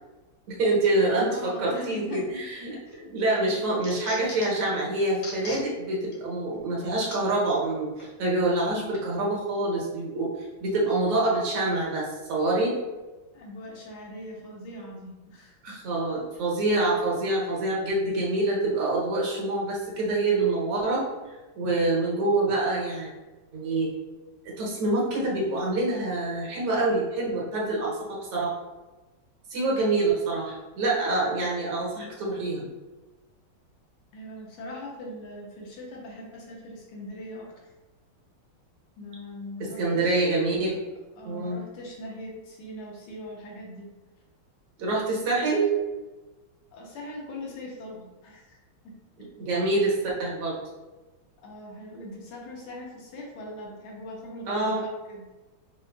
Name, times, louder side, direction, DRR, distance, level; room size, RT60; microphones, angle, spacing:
voice 1, 0.5-2.8 3.1-10.3 10.6-12.8 15.6-21.1 21.6-23.1 23.5-23.9 24.6-28.5 29.5-32.7 39.8-40.8 41.2-41.6 44.8-45.7 49.4-49.9 50.2-50.5 54.5-54.8, right 2 dB, 85° right, -5 dB, 2.0 m, -26 dB
voice 2, 1.0-2.3 2.9-3.1 13.3-15.8 34.1-37.5 39.0-40.3 41.2-43.9 46.7-48.6 48.8-48.9 49.2-49.3 51.4-55.3, left 1 dB, 80° left, -2 dB, 1.8 m, -41 dB
sound 1, 2.6-3.0 3.4-4.7 5.1-5.6 6.1-6.2 7.1-7.2 8.0-8.1, left 2 dB, 55° left, 0.9 m, -40 dB
5.6 x 2.5 x 2.3 m, 1.2 s
omnidirectional pair, 2.3 m